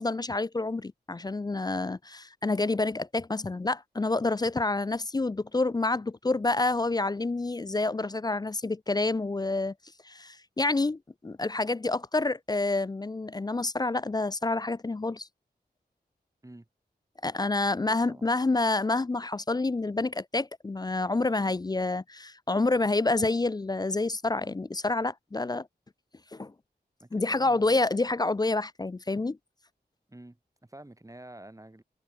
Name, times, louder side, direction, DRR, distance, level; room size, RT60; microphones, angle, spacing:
voice 1, 0.0-9.7 10.0-15.3 17.2-25.7 26.3-26.5 27.1-29.4, left 2 dB, 25° left, 0.4 m, -28 dB
voice 2, 17.7-18.3 21.4-21.6 27.0-27.8 30.1-31.8, right 1 dB, 20° right, 6.0 m, -49 dB
cardioid pair, 60°, 17 cm